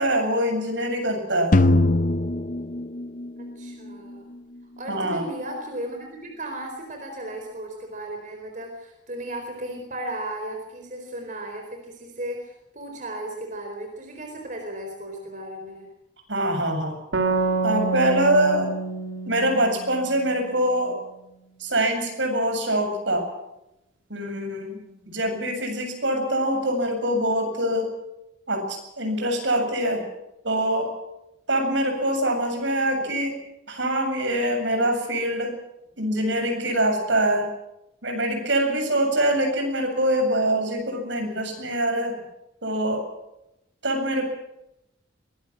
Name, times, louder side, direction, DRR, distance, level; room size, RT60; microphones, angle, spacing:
voice 1, 0.0-1.5 4.9-5.2 16.3-16.9 17.6-18.7 19.3-21.0 21.6-23.3 24.1-24.8 25.1-27.9 28.5-30.0 30.4-30.9 31.5-33.3 33.7-35.5 36.0-37.5 38.0-42.1 42.6-43.0 43.8-44.3, right 1 dB, 70° right, 4 dB, 7.6 m, -24 dB
sound 1, 1.5-3.7, left 2 dB, 40° left, 0.8 m, -21 dB
voice 2, 3.4-4.3 4.8-15.9 24.7-25.0, right 1 dB, 40° right, 3 dB, 4.3 m, -35 dB
sound 2, 17.1-20.6, right 3 dB, 90° right, 3.8 m, -27 dB
23.5 x 20.5 x 6.1 m, 0.88 s
head